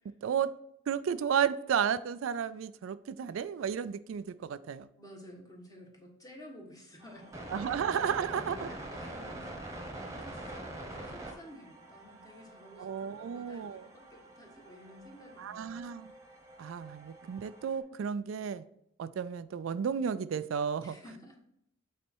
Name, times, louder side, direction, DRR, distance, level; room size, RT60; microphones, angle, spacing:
voice 1, 0.9-4.9 7.5-8.7 12.8-13.9 15.4-16.1 16.6-18.7 19.0-21.0, right 7 dB, 65° right, 13 dB, 0.3 m, -33 dB
voice 2, 5.0-7.6 7.9-15.8 20.8-21.4, left 1 dB, 15° left, 0 dB, 1.5 m, -53 dB
sound 1, 7.0-17.8, right 1 dB, 15° right, 1.2 m, -45 dB
8.3 x 4.2 x 4.5 m, 0.76 s
head